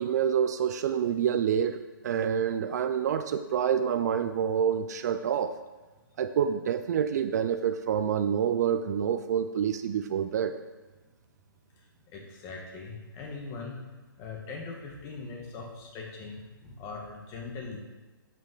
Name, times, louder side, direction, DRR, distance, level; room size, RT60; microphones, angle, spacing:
voice 1, 0.0-5.6 6.2-10.5, right 8 dB, 45° right, 10 dB, 0.4 m, -27 dB
voice 2, 12.1-13.8 14.2-17.8, left 4 dB, 25° left, 0 dB, 1.6 m, -41 dB
11.5 x 5.7 x 3.9 m, 1.2 s
hypercardioid pair, 145°, 12 cm